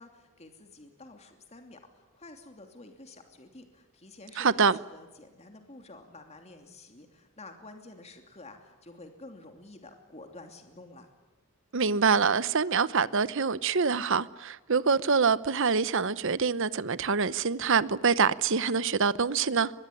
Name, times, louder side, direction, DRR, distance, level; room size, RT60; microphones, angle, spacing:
voice 1, 0.0-11.1, left 2 dB, 30° left, 2.9 m, -50 dB
voice 2, 4.4-4.8 11.7-19.7, right 5 dB, 60° right, 0.9 m, -25 dB
23.5 x 21.5 x 10.0 m
head